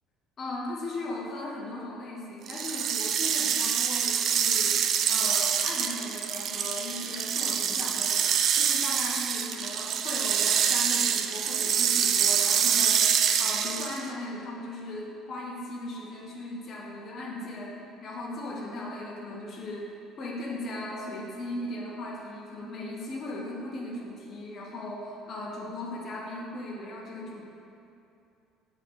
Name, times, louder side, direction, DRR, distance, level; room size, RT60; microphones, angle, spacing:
voice 1, 0.4-13.1 13.4-27.4, left 1 dB, 35° left, -4 dB, 1.0 m, -37 dB
sound 1, 2.5-14.1, right 8 dB, 50° right, 0.3 m, -26 dB
7.5 x 3.8 x 4.7 m, 2.7 s
cardioid pair, 135°, 0 cm